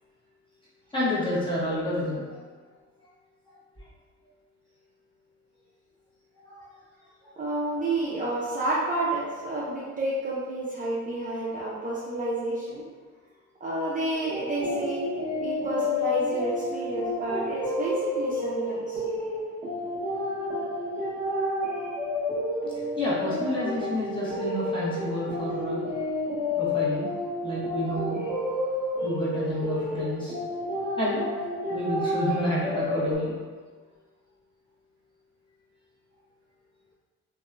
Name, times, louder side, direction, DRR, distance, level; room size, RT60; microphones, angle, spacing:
voice 1, 0.9-2.2 6.4-6.7 23.0-25.8 26.5-27.1 27.4-28.2 29.0-30.3 31.0-31.2 31.7-33.3, left 1 dB, 15° left, -9 dB, 1.0 m, -29 dB
voice 2, 7.4-12.8 13.6-15.0 15.4-19.0, right 2 dB, 25° right, -7 dB, 0.5 m, -30 dB
sound 1, 14.1-33.2, left 1 dB, 10° right, 1.2 m, -30 dB
2.7 x 2.2 x 2.4 m, 1.5 s
cardioid pair, 90°, 30 cm